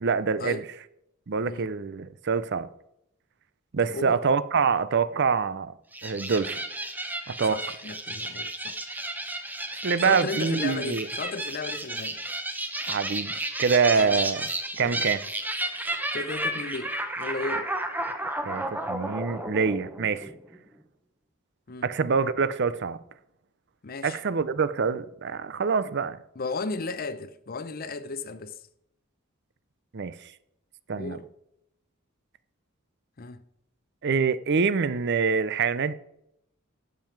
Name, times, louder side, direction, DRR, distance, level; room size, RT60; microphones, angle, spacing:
voice 1, 0.0-0.6 1.3-2.7 3.7-5.7 6.0-6.6 7.3-7.6 9.8-11.1 12.9-13.3 13.6-14.5 14.8-15.2 18.4-20.3 21.8-23.0 24.0-26.2 29.9-30.1 30.9-31.2 34.0-35.9, right 5 dB, 50° right, 0.5 m, -25 dB
voice 2, 3.8-4.2 7.5-8.8 10.0-12.2 14.0-14.3 14.7-15.0 16.1-17.7 21.7-21.9 23.8-24.2 26.4-28.6 31.0-31.3 33.2-33.4, left 3 dB, 45° left, 0.7 m, -35 dB
sound 1, 5.9-20.6, right 1 dB, 10° right, 0.9 m, -32 dB
12.0 x 7.6 x 4.6 m
head